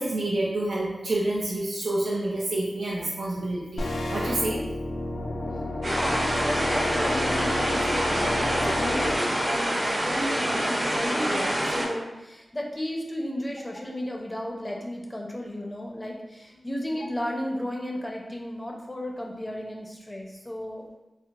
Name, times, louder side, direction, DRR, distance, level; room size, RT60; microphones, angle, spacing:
voice 1, 0.0-4.6, right 1 dB, 80° right, -6 dB, 0.5 m, -28 dB
sound 1, 3.8-9.2, left 1 dB, 85° left, 0.4 m, -30 dB
voice 2, 5.8-20.8, left 1 dB, 15° left, 0 dB, 0.5 m, -34 dB
sound 2, 5.8-11.8, equal, 60° right, 0.9 m, -26 dB
4.5 x 2.0 x 2.3 m, 1.0 s
wide cardioid pair, 105°, 0 cm